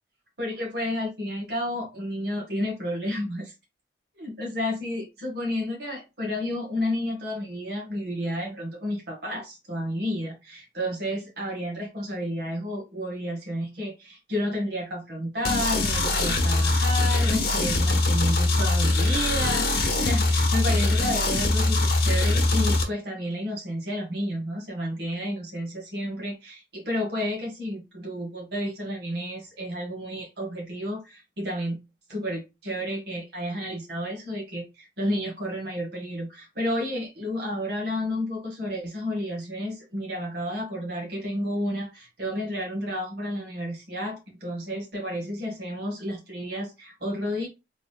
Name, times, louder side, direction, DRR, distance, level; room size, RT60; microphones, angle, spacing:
voice 1, 0.4-3.5 4.1-31.8 32.1-47.5, equal, 65° right, 1.7 m, -31 dB
sound 1, 15.4-22.8, left 2 dB, 60° left, 1.0 m, -22 dB
3.7 x 3.7 x 2.3 m
head